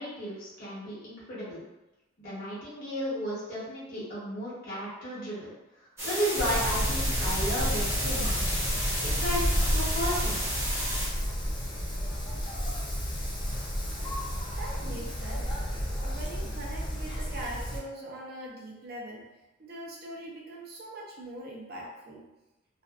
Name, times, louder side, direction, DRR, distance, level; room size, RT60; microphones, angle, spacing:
voice 1, 0.0-1.6 2.2-8.6 9.0-10.4, equal, 50° left, -9 dB, 0.9 m, -34 dB
sound 1, 6.0-11.1, equal, 15° right, 0.7 m, -33 dB
Wind, 6.4-17.8, equal, 25° left, 0.5 m, -31 dB
voice 2, 14.4-15.4 15.8-19.3 19.6-22.2, right 1 dB, 55° right, -2 dB, 0.6 m, -42 dB
2.5 x 2.3 x 2.3 m, 1.0 s
head